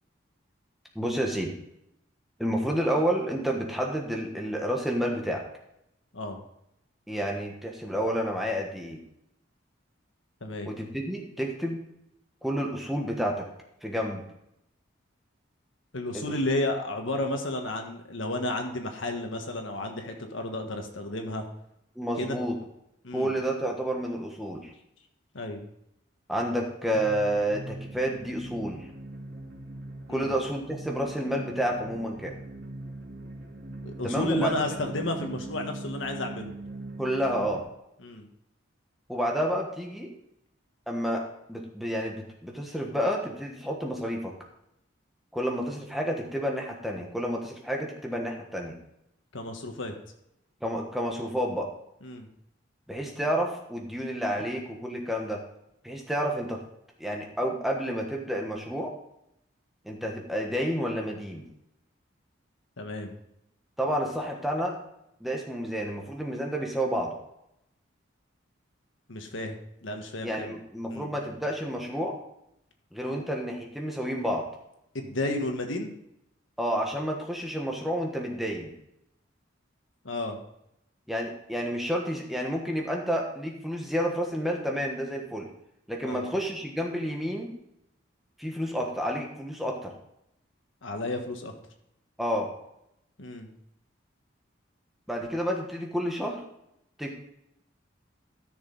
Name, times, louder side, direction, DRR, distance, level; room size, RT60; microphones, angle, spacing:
voice 1, 0.9-1.5 2.4-5.5 7.1-9.0 10.6-11.9 12.4-13.5 13.8-14.2 16.1-16.3 22.0-22.6 23.1-24.7 26.3-28.9 30.1-32.3 34.0-34.5 37.0-37.6 39.1-40.1 40.9-44.3 45.3-48.7 50.6-51.7 52.9-55.4 55.8-56.6 57.0-58.9 59.8-61.4 63.8-64.8 65.2-67.1 70.2-72.1 72.9-74.5 76.6-78.7 81.1-85.5 85.9-87.5 88.4-89.9 92.2-92.5 95.1-96.4 97.0-97.1, equal, ahead, 0 dB, 1.3 m, -30 dB
voice 2, 10.4-10.7 15.9-21.4 22.2-22.4 23.0-23.3 25.3-25.6 30.1-30.3 33.8-36.5 38.0-38.3 49.3-49.9 52.0-52.3 62.8-63.1 69.1-70.5 70.9-71.1 73.1-73.2 74.9-75.9 80.0-80.4 86.0-86.3 90.8-91.5 93.2-93.5, left 1 dB, 75° left, 4 dB, 1.5 m, -32 dB
sound 1, 26.8-37.6, right 2 dB, 55° right, 2.7 m, -41 dB
13.5 x 6.5 x 4.0 m, 0.79 s
head